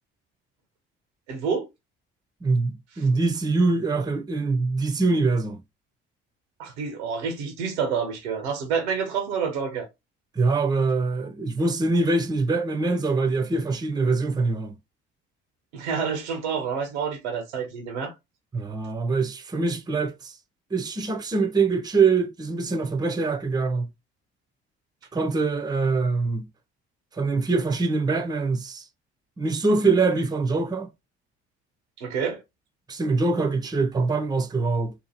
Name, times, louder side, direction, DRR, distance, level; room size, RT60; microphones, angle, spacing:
voice 1, 1.3-1.7 6.6-9.9 15.7-18.1 32.0-32.4, right 6 dB, 85° right, 0.7 m, -28 dB
voice 2, 2.4-5.6 10.3-14.8 18.5-20.3 20.7-23.9 25.1-26.5 27.1-28.8 29.4-30.9 32.9-34.9, right 3 dB, 10° right, 0.5 m, -24 dB
2.8 x 2.4 x 2.7 m
hypercardioid pair, 50°, 33 cm